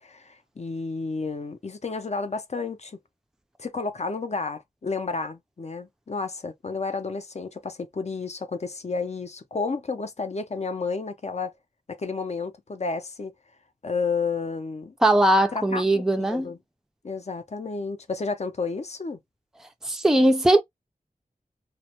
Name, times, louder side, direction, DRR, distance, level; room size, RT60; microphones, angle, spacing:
voice 1, 0.0-3.0 3.6-11.5 11.9-13.3 13.8-14.9 15.5-16.6 17.0-19.2, left 4 dB, 45° left, 0.5 m, -31 dB
voice 2, 15.0-16.5 19.8-20.6, right 1 dB, 5° right, 0.4 m, -20 dB
2.2 x 2.1 x 2.8 m
wide cardioid pair, 65°, 15 cm